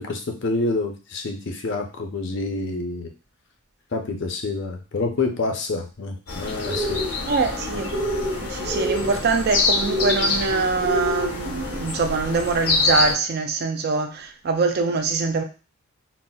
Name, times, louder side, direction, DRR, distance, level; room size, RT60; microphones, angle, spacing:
voice 1, 0.0-3.1 3.9-7.0, left 3 dB, 60° left, 0.5 m, -27 dB
sound 1, 6.3-13.1, left 3 dB, 90° left, 0.8 m, -26 dB
sound 2, 6.6-7.1 7.9-8.4 8.6-9.1 9.8-10.3 10.8-11.3, equal, 65° right, 1.0 m, -27 dB
voice 2, 7.2-8.0 8.4-15.4, right 4 dB, 50° right, 0.4 m, -23 dB
3.9 x 2.0 x 2.3 m
head